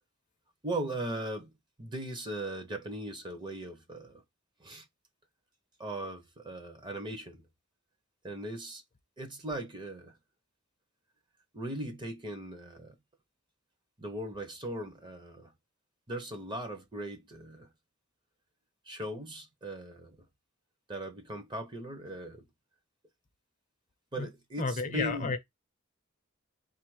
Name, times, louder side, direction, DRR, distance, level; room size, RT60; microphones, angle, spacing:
voice 1, 0.6-1.5 1.8-4.2 4.6-4.9 5.8-7.5 8.2-8.8 9.2-10.2 11.5-12.9 14.0-15.5 16.1-17.7 18.9-20.2 20.9-22.4 24.1-25.3, right 1 dB, 20° right, 0.7 m, -39 dB
voice 2, 24.6-25.4, left 3 dB, 40° left, 0.6 m, -31 dB
3.8 x 2.5 x 4.6 m
head